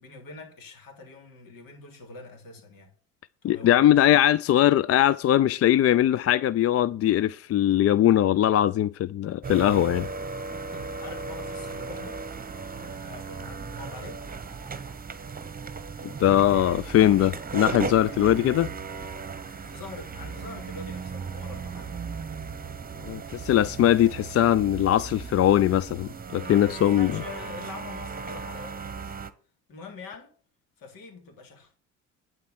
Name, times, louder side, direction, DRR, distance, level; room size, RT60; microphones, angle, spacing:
voice 1, 0.0-2.9 3.4-4.1 10.7-12.2 12.7-14.2 18.0-18.3 19.4-22.1 26.4-29.1 29.7-30.3 30.8-31.8, left 3 dB, 65° left, 3.5 m, -44 dB
voice 2, 3.4-10.1 16.2-18.7 23.1-27.1, left 12 dB, 45° left, 0.4 m, -21 dB
sound 1, 9.4-29.3, right 4 dB, 25° right, 1.2 m, -36 dB
10.5 x 4.5 x 7.1 m
supercardioid pair, 65°, 36 cm